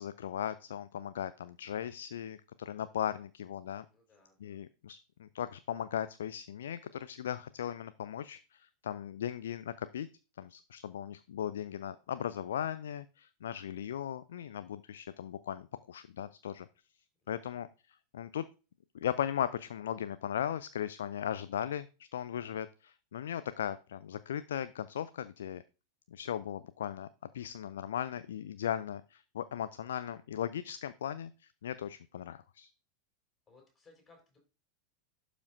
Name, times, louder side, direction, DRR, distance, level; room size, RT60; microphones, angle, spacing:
voice 1, 0.0-3.9 4.4-10.1 10.4-16.7 17.3-18.5 18.9-25.6 26.1-27.1 27.3-32.7, left 10 dB, 60° left, 14 dB, 0.3 m, -38 dB
voice 2, 3.9-4.6 17.2-17.6 33.5-34.4, left 3 dB, 15° left, 0 dB, 4.5 m, -63 dB
11.5 x 5.1 x 2.6 m, 0.32 s
figure-of-eight pair, 90°, 0 cm